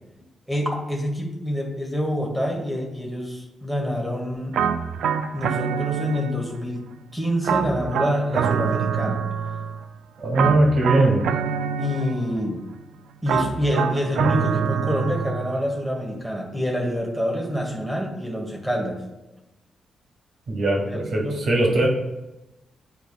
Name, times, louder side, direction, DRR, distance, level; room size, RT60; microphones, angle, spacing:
voice 1, 0.5-4.6 5.3-9.2 11.8-12.6 13.2-19.0 20.8-21.4 21.7-21.9, equal, 5° right, 0 dB, 1.2 m, -26 dB
sound 1, 4.5-6.6 7.4-9.8 10.4-12.4 13.3-15.7, right 7 dB, 90° right, 0.4 m, -25 dB
voice 2, 10.2-11.2 20.5-21.9, right 2 dB, 55° right, -1 dB, 1.8 m, -20 dB
10.0 x 4.5 x 2.3 m, 0.98 s
cardioid pair, 120°, 0 cm